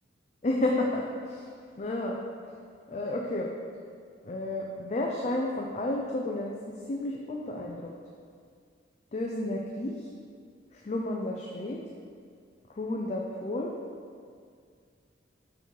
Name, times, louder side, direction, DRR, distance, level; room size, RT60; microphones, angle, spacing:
voice 1, 0.4-1.5 1.8-2.2 2.9-3.5 4.2-6.5 6.9-7.9 9.1-10.1 10.7-11.8 12.7-13.7, left 1 dB, 35° left, -1 dB, 0.4 m, -31 dB
4.8 x 4.6 x 5.2 m, 2.2 s
head